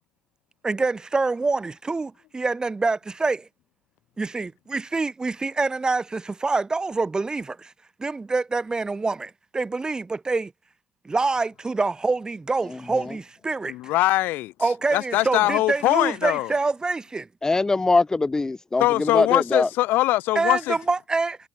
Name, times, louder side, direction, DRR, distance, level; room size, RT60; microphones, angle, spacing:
voice 1, 0.6-3.5 4.2-7.7 8.0-10.5 11.0-13.8 14.6-17.3 20.3-21.4, right 3 dB, 20° right, 2.5 m, -26 dB
voice 2, 13.7-14.5 14.9-16.5 18.8-20.8, left 17 dB, 75° left, 1.1 m, -22 dB
voice 3, 17.4-19.7, left 3 dB, 20° left, 0.7 m, -22 dB
supercardioid pair, 75°, 3 cm